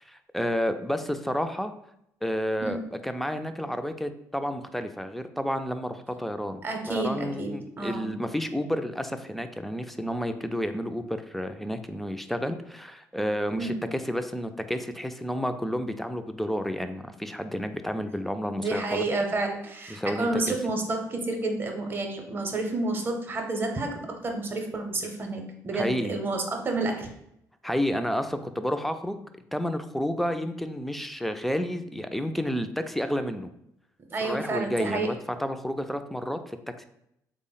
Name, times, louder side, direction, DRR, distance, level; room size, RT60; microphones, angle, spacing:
voice 1, 0.1-1.7 2.2-19.0 19.9-20.6 25.7-26.2 27.6-29.2 29.5-33.5 34.2-36.6, equal, 5° left, 8 dB, 0.3 m, -30 dB
voice 2, 6.6-8.1 13.6-13.7 18.6-27.1 34.1-35.1, right 2 dB, 30° right, 3 dB, 0.6 m, -30 dB
3.5 x 2.0 x 3.8 m, 0.77 s
cardioid pair, 80°, 7 cm